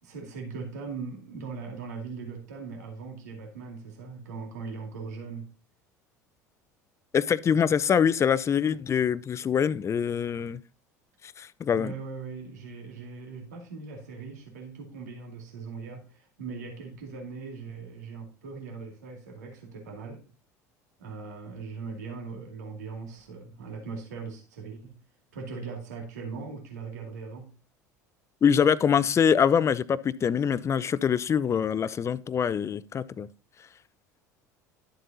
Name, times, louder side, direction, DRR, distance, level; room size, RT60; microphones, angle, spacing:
voice 1, 0.0-5.5 11.8-20.2 21.0-25.0 25.3-27.6, right 4 dB, 75° right, 2.4 m, -40 dB
voice 2, 7.1-10.6 11.4-11.9 28.4-33.3, left 7 dB, 30° left, 0.6 m, -24 dB
12.5 x 7.7 x 2.7 m
hypercardioid pair, 70°, 9 cm